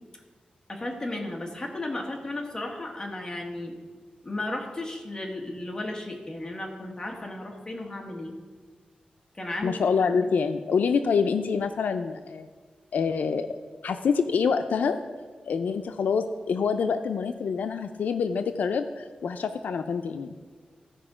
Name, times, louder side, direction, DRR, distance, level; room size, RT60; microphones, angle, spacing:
voice 1, 0.7-3.8 4.2-8.3 9.3-9.8, left 1 dB, 25° left, 1 dB, 1.4 m, -34 dB
voice 2, 9.6-12.5 12.9-13.6 13.8-15.0 15.5-20.3, left 5 dB, 85° left, 9 dB, 0.4 m, -26 dB
14.5 x 5.1 x 4.9 m, 1.5 s
wide cardioid pair, 130°, 3 cm